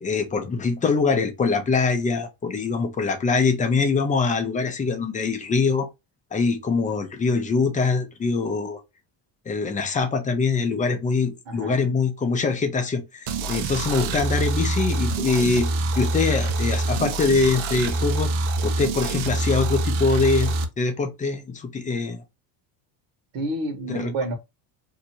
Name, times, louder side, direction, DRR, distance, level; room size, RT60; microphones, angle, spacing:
voice 1, 0.0-5.9 6.3-8.8 9.5-15.7 16.0-18.3 18.6-22.2 23.9-24.1, left 4 dB, 15° left, 0.5 m, -23 dB
voice 2, 11.5-11.8 23.3-24.3, right 2 dB, 60° right, 1.3 m, -29 dB
sound 1, 13.3-20.6, right 2 dB, 90° right, 0.8 m, -25 dB
2.8 x 2.5 x 4.1 m
cardioid pair, 160°, 46 cm